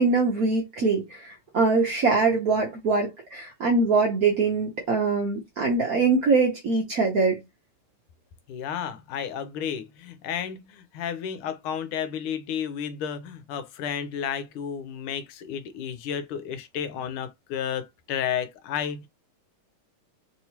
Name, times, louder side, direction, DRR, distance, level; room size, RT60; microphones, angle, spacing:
voice 1, 0.0-7.4, right 4 dB, 65° right, 0.9 m, -23 dB
voice 2, 8.5-19.1, left 8 dB, 85° left, 1.5 m, -32 dB
3.4 x 3.0 x 2.8 m
omnidirectional pair, 2.3 m